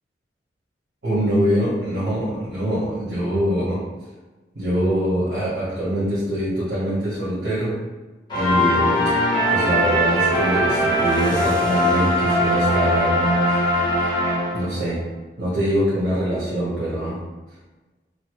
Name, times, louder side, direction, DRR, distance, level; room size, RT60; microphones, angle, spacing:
voice 1, 1.0-3.8 4.5-7.8 8.3-9.0 9.5-13.2 13.4-13.7 14.5-15.0 15.4-17.2, equal, 70° right, -10 dB, 1.2 m, -23 dB
sound 1, 8.3-14.9, equal, 25° left, 0.9 m, -20 dB
3.1 x 2.5 x 3.0 m, 1.2 s
head